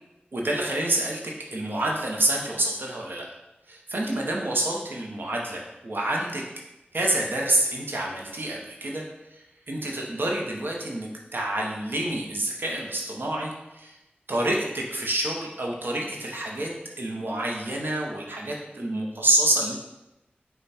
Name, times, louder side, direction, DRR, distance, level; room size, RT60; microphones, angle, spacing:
voice 1, 0.3-3.3 3.7-6.4 6.9-14.0 14.3-19.7, right 1 dB, 65° right, -1 dB, 0.7 m, -28 dB
5.3 x 2.3 x 4.1 m, 0.96 s
wide cardioid pair, 70°, 4 cm